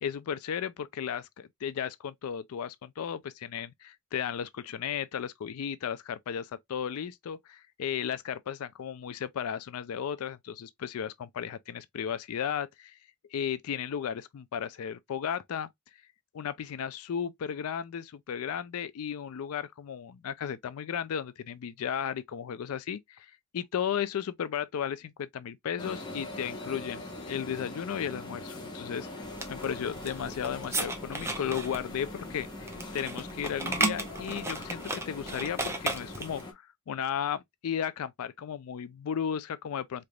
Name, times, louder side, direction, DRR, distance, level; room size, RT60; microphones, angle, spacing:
voice 1, 0.0-13.0 13.3-15.7 16.3-29.1 29.5-40.1, left 8 dB, 70° left, 0.4 m, -35 dB
sound 1, 25.8-36.5, left 2 dB, 20° left, 1.0 m, -42 dB
sound 2, 29.2-36.4, right 2 dB, 10° right, 0.7 m, -35 dB
3.8 x 3.3 x 2.3 m
head